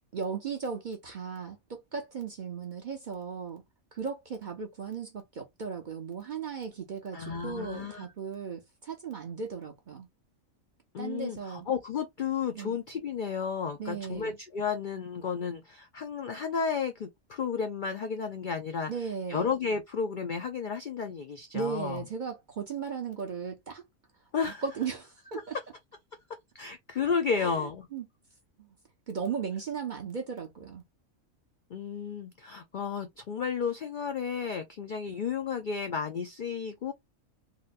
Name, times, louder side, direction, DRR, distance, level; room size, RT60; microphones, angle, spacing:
voice 1, 0.1-3.6 3.9-10.1 11.0-11.7 12.5-12.8 13.8-14.4 18.9-19.5 21.5-23.8 24.4-25.6 27.4-28.1 28.6-28.7 29.1-30.8, right 6 dB, 50° right, 0.6 m, -36 dB
voice 2, 7.1-8.0 10.9-18.9 19.3-22.0 24.3-24.6 26.5-27.9 31.7-36.9, left 6 dB, 65° left, 0.4 m, -32 dB
3.9 x 2.1 x 2.4 m
omnidirectional pair, 1.4 m